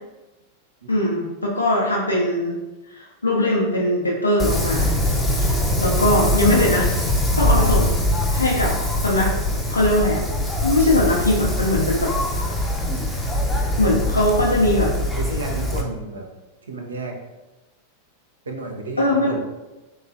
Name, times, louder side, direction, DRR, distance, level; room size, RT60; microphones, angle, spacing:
voice 1, 0.9-2.6 2.9-4.9 5.3-6.9 7.4-8.0 8.3-8.8 9.0-9.3 9.7-10.2 10.6-12.1 13.8-14.9 19.0-19.4, left 1 dB, 80° left, -4 dB, 0.4 m, -20 dB
Wind, 4.4-15.8, left 1 dB, 5° left, 0.5 m, -22 dB
voice 2, 15.2-16.2 16.7-17.2 18.5-19.4, right 2 dB, 70° right, 2 dB, 0.5 m, -31 dB
3.7 x 3.0 x 2.5 m, 1.1 s
figure-of-eight pair, 90°, 0 cm